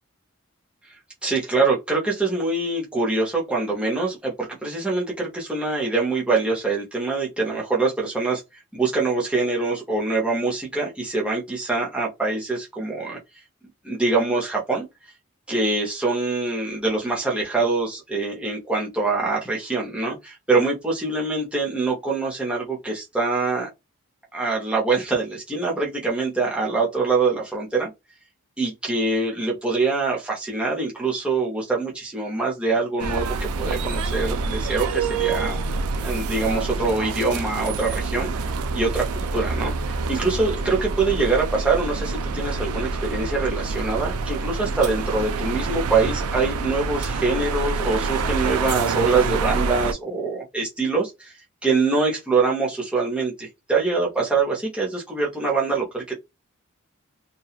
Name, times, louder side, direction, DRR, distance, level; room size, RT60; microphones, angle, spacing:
voice 1, 1.2-13.2 13.8-14.9 15.5-23.7 24.3-27.9 28.6-35.6 36.0-56.1, right 3 dB, 5° right, 0.7 m, -24 dB
sound 1, 33.0-49.9, right 4 dB, 85° right, 0.4 m, -27 dB
2.8 x 2.3 x 2.3 m
head